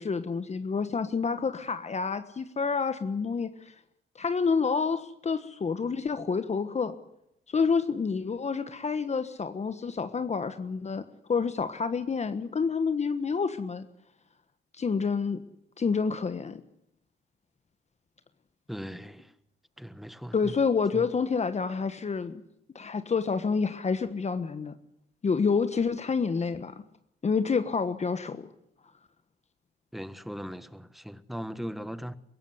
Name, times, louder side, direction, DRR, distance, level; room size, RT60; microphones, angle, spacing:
voice 1, 0.0-3.7 4.1-6.9 7.5-11.0 11.3-13.8 14.7-15.4 15.8-16.6 20.3-22.3 22.7-24.7 25.2-26.7 27.2-28.5, left 5 dB, 35° left, 1.4 m, -28 dB
voice 2, 18.7-19.3 19.8-20.6 20.9-21.1 29.9-32.2, equal, ahead, 1.5 m, -39 dB
24.0 x 16.0 x 9.6 m
cardioid pair, 90°, 20 cm